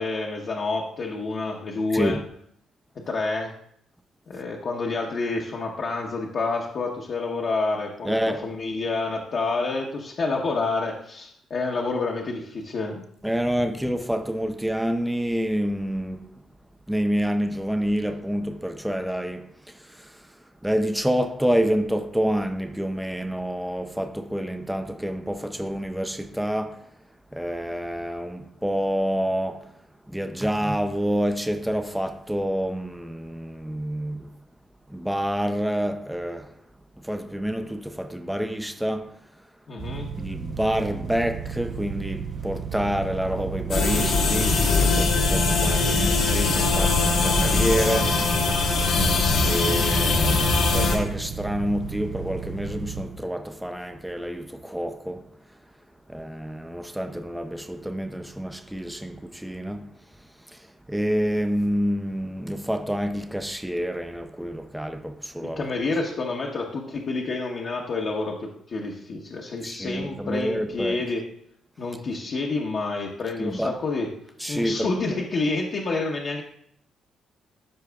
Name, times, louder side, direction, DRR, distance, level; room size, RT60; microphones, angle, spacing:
voice 1, 0.0-2.2 3.1-3.5 4.3-8.2 8.4-13.0 39.7-40.1 65.6-71.2 71.8-74.1 74.5-76.4, left 3 dB, 55° left, 1.0 m, -28 dB
voice 2, 8.0-8.4 13.2-16.4 16.9-20.3 20.6-26.9 27.3-29.7 30.1-34.3 34.9-36.5 37.0-39.1 40.2-48.3 49.4-55.3 56.1-59.9 60.5-65.6 69.6-71.0 73.4-73.8 74.4-74.9, equal, 5° right, 0.5 m, -28 dB
sound 1, 39.8-53.0, right 7 dB, 55° right, 1.3 m, -34 dB
sound 2, 43.7-51.0, left 3 dB, 75° left, 1.5 m, -21 dB
13.0 x 4.7 x 2.3 m
cardioid pair, 90°, 0 cm